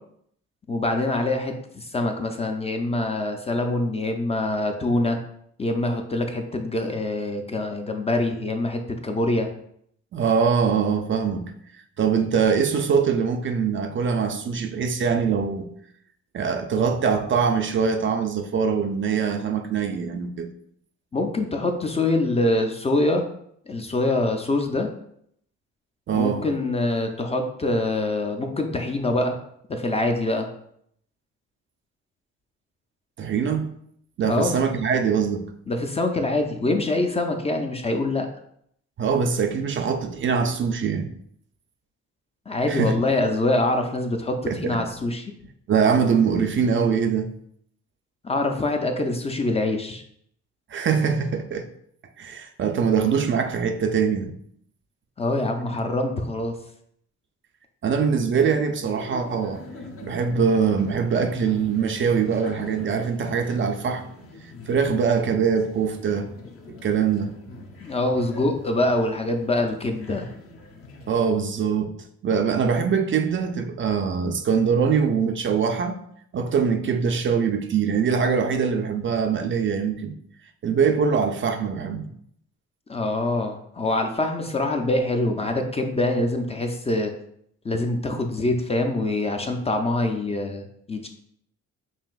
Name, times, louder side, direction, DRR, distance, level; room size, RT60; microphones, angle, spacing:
voice 1, 0.7-5.2 5.6-9.5 21.1-23.3 23.7-24.9 26.1-29.4 29.7-30.5 34.2-34.5 35.7-38.3 42.5-44.4 44.6-45.2 48.2-50.0 55.2-56.6 67.8-70.3 82.9-87.1 87.6-91.1, left 2 dB, 20° left, 0.4 m, -24 dB
voice 2, 10.1-15.7 16.3-20.5 26.1-26.4 33.2-33.7 34.2-35.5 39.0-41.1 42.7-42.9 44.5-44.8 45.7-47.3 50.7-51.7 52.2-54.3 57.8-59.6 60.0-64.0 64.7-66.3 66.8-67.4 71.1-71.9 72.2-76.0 76.3-80.1 80.6-82.1, right 6 dB, 40° right, 0.4 m, -23 dB
sound 1, 58.8-71.1, left 3 dB, 50° left, 0.7 m, -43 dB
5.6 x 2.5 x 2.4 m
cardioid pair, 90°, 30 cm